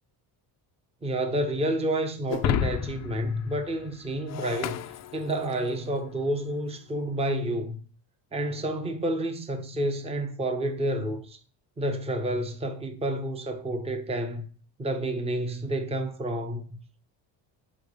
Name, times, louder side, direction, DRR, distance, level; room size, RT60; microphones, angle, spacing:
voice 1, 1.0-4.8 5.1-7.8 8.3-11.4 11.8-14.5 14.8-16.8, right 1 dB, 15° right, 0.8 m, -29 dB
Shatter, 2.3-5.8, left 9 dB, 40° left, 0.4 m, -32 dB
5.9 x 5.3 x 6.5 m
cardioid pair, 150°, 44 cm